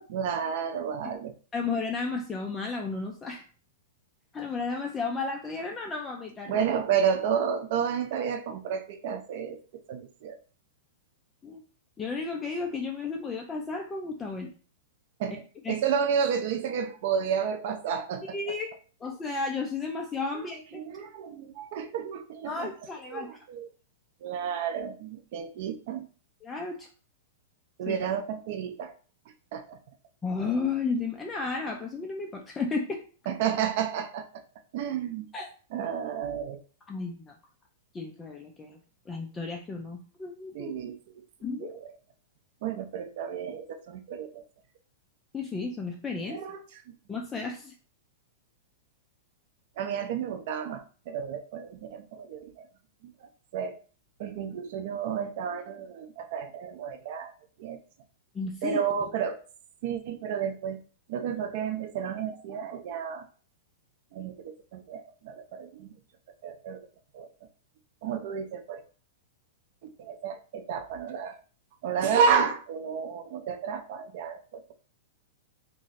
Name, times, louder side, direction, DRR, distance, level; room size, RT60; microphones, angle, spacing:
voice 1, 0.1-1.3 6.5-9.6 9.9-10.4 15.2-18.2 20.7-22.7 23.1-23.7 24.2-26.1 27.8-28.9 29.5-29.8 33.3-34.2 34.7-35.2 35.7-36.6 40.5-41.2 41.6-41.9 42.6-44.4 46.2-46.6 49.8-52.7 53.0-53.1 53.5-53.8 54.2-57.3 57.6-57.8 58.6-59.4 59.8-60.8 61.1-63.2 64.1-65.9 66.4-66.8 67.1-67.3 68.0-68.8 70.0-71.4 71.8-74.7, right 7 dB, 45° right, 7 dB, 0.5 m, -31 dB
voice 2, 1.5-3.4 4.3-6.7 11.4-11.6 12.0-14.5 15.6-15.7 18.3-18.7 19.0-20.8 22.4-23.3 26.4-26.9 27.9-28.0 30.2-33.0 35.3-35.5 36.9-37.3 37.9-38.8 39.1-40.7 41.4-41.8 45.3-46.4 47.1-47.7 58.3-58.8, left 4 dB, 10° left, 1 dB, 0.3 m, -33 dB
3.1 x 2.5 x 3.9 m, 0.38 s
supercardioid pair, 175°, 0 cm